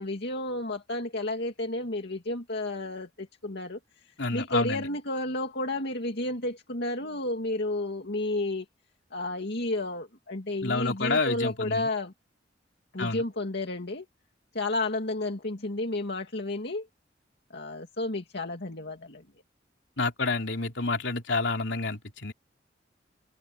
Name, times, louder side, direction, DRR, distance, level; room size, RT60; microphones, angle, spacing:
voice 1, 0.0-8.7 9.1-12.1 12.9-14.1 14.5-16.9 17.5-19.2, left 2 dB, 65° left, 2.3 m, -32 dB
voice 2, 4.2-4.9 10.6-11.9 13.0-13.2 20.0-22.3, left 3 dB, 80° left, 3.5 m, -29 dB
head